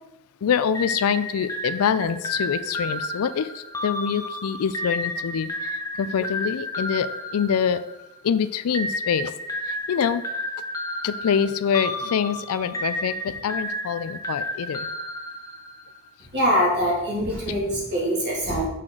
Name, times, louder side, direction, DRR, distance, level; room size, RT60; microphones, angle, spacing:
voice 1, 0.4-5.7 6.0-7.8 8.2-9.3 9.9-10.2 11.0-14.9, left 7 dB, 75° left, 13 dB, 0.4 m, -25 dB
sound 1, 0.7-8.2 8.7-16.0, left 1 dB, 15° left, 0.6 m, -32 dB
voice 2, 16.3-18.7, equal, 50° right, -4 dB, 2.4 m, -23 dB
6.4 x 5.8 x 3.8 m, 0.91 s
head